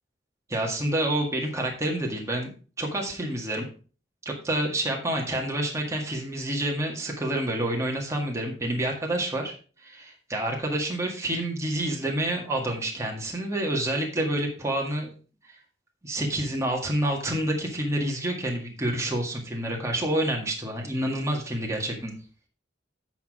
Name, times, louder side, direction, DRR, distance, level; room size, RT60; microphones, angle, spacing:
voice 1, 0.5-3.7 4.3-9.5 9.8-15.1 16.0-22.1, right 1 dB, 15° right, 0 dB, 1.8 m, -28 dB
8.6 x 5.9 x 4.7 m, 0.38 s
head